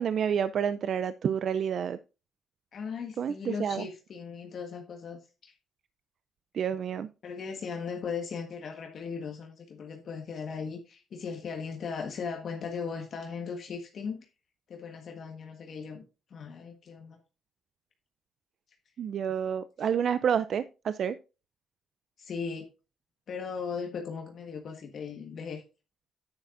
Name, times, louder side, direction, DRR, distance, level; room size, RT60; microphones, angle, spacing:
voice 1, 0.0-2.0 3.2-3.9 6.5-7.1 19.0-21.2, right 8 dB, 60° right, 13 dB, 0.4 m, -29 dB
voice 2, 2.7-5.5 7.2-14.3 14.7-16.0 16.3-17.2 19.8-19.9 22.2-22.7 23.3-25.6, left 5 dB, 60° left, 3 dB, 1.4 m, -38 dB
9.9 x 9.6 x 2.6 m, 0.31 s
cardioid pair, 90°, 0 cm